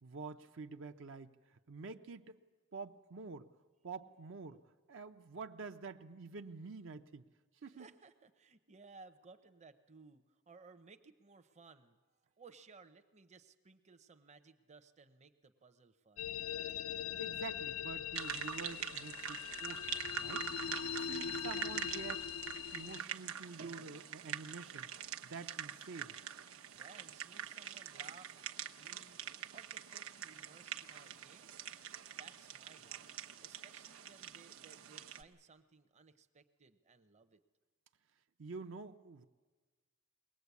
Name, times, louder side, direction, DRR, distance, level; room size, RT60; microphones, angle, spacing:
voice 1, 0.0-1.3 1.7-2.4 2.7-3.5 3.8-4.6 4.9-7.2 7.6-7.9 17.2-20.5 20.9-22.3 22.7-24.9 25.3-26.2 38.4-39.3, right 4 dB, 65° right, 8 dB, 0.7 m, -48 dB
voice 2, 7.7-12.0 12.4-16.3 26.7-29.2 29.5-31.5 32.2-33.1 33.4-37.4, right 4 dB, 35° right, 8 dB, 0.8 m, -60 dB
sound 1, 16.2-23.0, left 8 dB, 85° left, 0.6 m, -41 dB
sound 2, 18.2-35.2, right 9 dB, 85° right, 1.0 m, -45 dB
22.0 x 18.5 x 8.3 m, 1.4 s
head